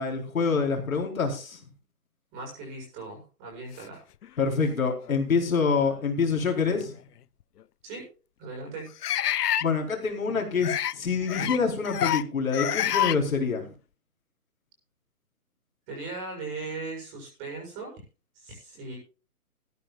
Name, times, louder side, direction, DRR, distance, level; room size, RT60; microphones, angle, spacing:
voice 1, 0.0-1.6 4.4-6.9 9.6-13.6, left 5 dB, 60° left, 2 dB, 4.3 m, -26 dB
voice 2, 2.3-4.0 7.8-8.0 8.4-8.9 15.9-18.0 18.3-19.0, right 3 dB, 15° right, 0 dB, 6.5 m, -38 dB
sound 1, 4.2-4.3 5.1-5.2 6.8-6.9 9.0-9.7 10.6-10.9 11.3-11.6 11.8-12.2 12.5-13.2, left 11 dB, 85° left, 0.6 m, -27 dB
17.0 x 14.0 x 2.4 m, 0.32 s
hypercardioid pair, 170°, 46 cm